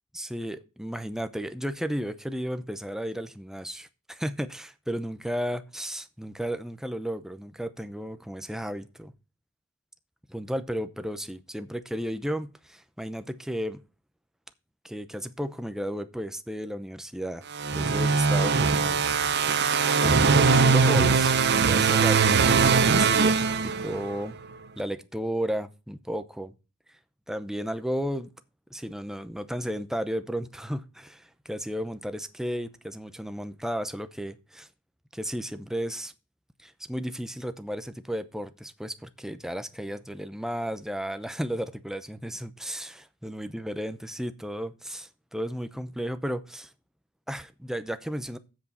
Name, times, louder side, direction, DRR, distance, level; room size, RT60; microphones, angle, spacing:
voice 1, 0.1-9.1 10.3-13.8 14.8-17.5 17.7-19.0 20.0-21.3 21.6-24.3 24.8-26.5 27.3-28.3 28.7-34.7 35.1-36.1 36.6-46.7 47.3-48.4, equal, ahead, 0.7 m, -33 dB
sound 1, 17.5-24.2, right 5 dB, 55° right, 0.7 m, -21 dB
7.9 x 7.0 x 5.4 m
head